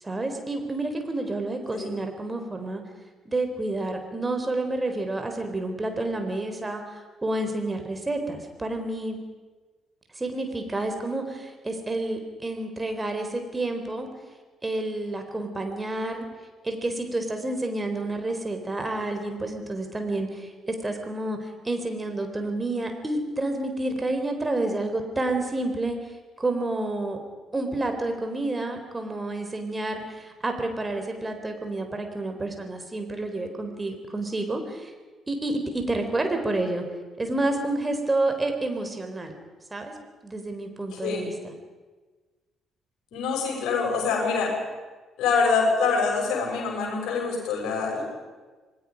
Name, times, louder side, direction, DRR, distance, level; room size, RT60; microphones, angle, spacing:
voice 1, 0.0-2.8 3.3-9.2 10.1-14.1 14.6-16.3 16.6-26.0 26.4-27.2 27.5-34.9 35.3-36.9 37.2-39.3 39.7-39.9 40.2-41.3, right 2 dB, 20° right, 5 dB, 4.0 m, -29 dB
voice 2, 43.1-44.5 45.2-48.0, left 4 dB, 60° left, -1 dB, 6.8 m, -25 dB
27.5 x 19.5 x 5.3 m, 1.3 s
figure-of-eight pair, 45°, 0 cm